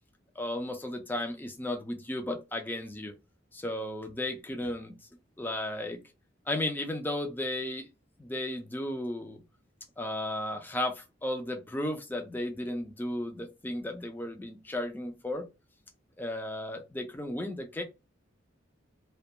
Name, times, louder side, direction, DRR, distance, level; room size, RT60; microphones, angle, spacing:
voice 1, 0.4-3.1 3.5-5.0 5.4-6.0 6.5-7.9 8.2-9.4 10.0-15.5 16.2-17.8, left 1 dB, 10° left, 0.4 m, -34 dB
2.3 x 2.2 x 2.7 m
head